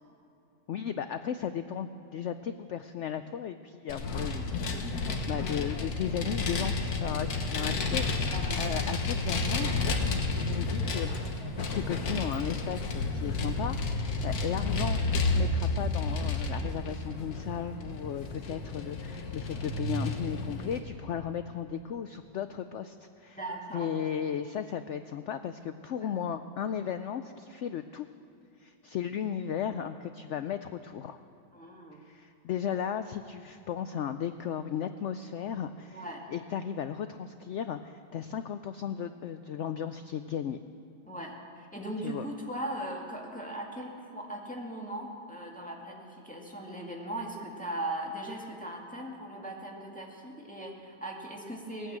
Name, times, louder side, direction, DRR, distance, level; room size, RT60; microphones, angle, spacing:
voice 1, 0.7-11.1 11.7-23.4 23.7-28.1 28.6-31.2 32.0-36.0 36.3-40.6 42.0-42.3, left 8 dB, 85° left, 10 dB, 0.6 m, -35 dB
Vehicle, 3.9-20.8, left 3 dB, 65° left, 1.7 m, -31 dB
voice 2, 8.3-8.6 23.4-23.9 26.0-26.1 31.5-32.0 35.9-36.2 41.1-52.0, right 1 dB, 5° left, -1 dB, 1.9 m, -39 dB
18.5 x 9.2 x 7.5 m, 2.8 s
omnidirectional pair, 1.8 m